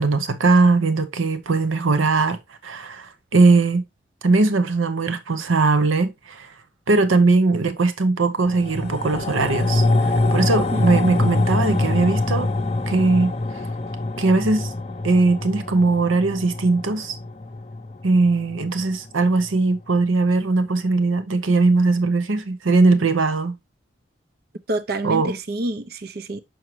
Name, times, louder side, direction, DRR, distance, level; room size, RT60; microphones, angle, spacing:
voice 1, 0.0-2.4 2.6-3.8 4.2-6.5 6.9-12.5 12.9-13.3 14.2-14.7 15.0-17.2 18.0-23.5 25.0-25.4, right 3 dB, 90° right, 0.8 m, -19 dB
sound 1, 8.5-19.1 19.4-19.5, left 2 dB, 30° left, 0.6 m, -24 dB
voice 2, 10.7-11.3 24.7-26.4, right 1 dB, 50° right, 0.6 m, -28 dB
6.3 x 6.1 x 3.0 m
head